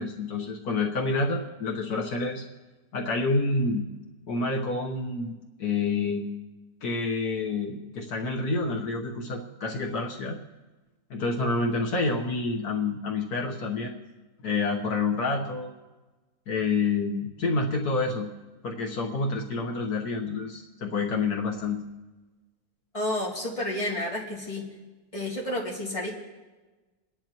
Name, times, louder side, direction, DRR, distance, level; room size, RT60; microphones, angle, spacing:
voice 1, 0.0-2.4 2.9-3.9 4.3-5.3 5.6-6.3 6.8-10.4 11.1-14.0 14.4-15.7 16.5-18.3 18.6-21.8, left 3 dB, 80° left, 0 dB, 1.8 m, -28 dB
voice 2, 22.9-24.6 25.1-26.1, left 1 dB, 20° left, -5 dB, 3.0 m, -30 dB
27.5 x 10.5 x 3.1 m, 1.2 s
omnidirectional pair, 1.6 m